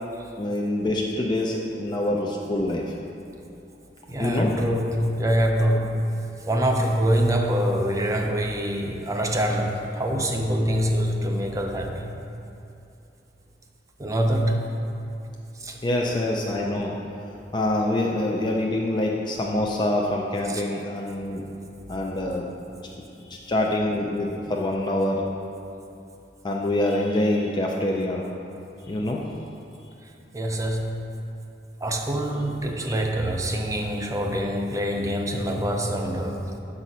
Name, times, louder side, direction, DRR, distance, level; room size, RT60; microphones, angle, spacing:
voice 1, 0.4-2.9 4.2-4.5 15.8-16.9 17.5-21.5 21.9-22.5 23.3-25.2 26.4-28.2 28.9-29.2, left 1 dB, 25° left, -2 dB, 0.4 m, -25 dB
voice 2, 4.1-6.0 6.5-12.1 14.0-14.6 15.6-15.8 17.4-17.6 20.5-20.6 30.3-30.9 31.8-36.6, equal, 20° right, 2 dB, 0.6 m, -25 dB
6.6 x 4.1 x 6.0 m, 2.8 s
head